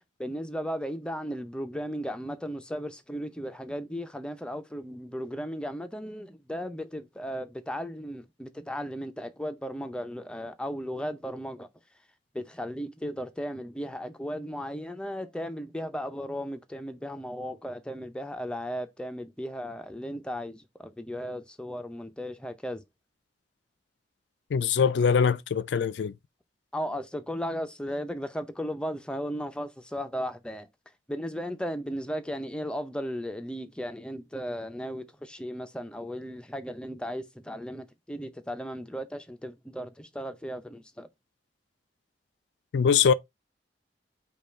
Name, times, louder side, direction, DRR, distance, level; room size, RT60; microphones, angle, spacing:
voice 1, 0.2-11.7 12.3-22.8 26.7-30.7 31.1-41.1, equal, 5° left, 0.5 m, -36 dB
voice 2, 24.5-26.1 42.7-43.1, left 6 dB, 70° left, 0.4 m, -23 dB
5.3 x 2.3 x 4.3 m
head